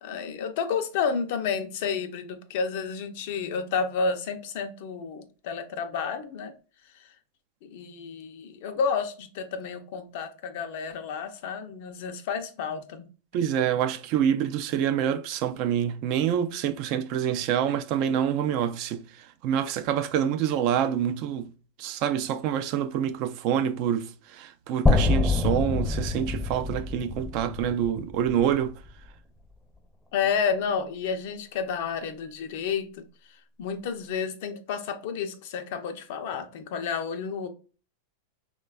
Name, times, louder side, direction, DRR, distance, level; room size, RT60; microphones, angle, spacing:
voice 1, 0.0-6.5 7.6-13.1 30.1-33.0 33.6-37.5, left 6 dB, 60° left, 0.5 m, -30 dB
voice 2, 13.3-21.5 21.8-28.8, right 9 dB, 50° right, 0.3 m, -27 dB
sound 1, 24.9-28.9, left 3 dB, 5° left, 0.5 m, -26 dB
3.1 x 2.2 x 2.3 m
hypercardioid pair, 110°, 0 cm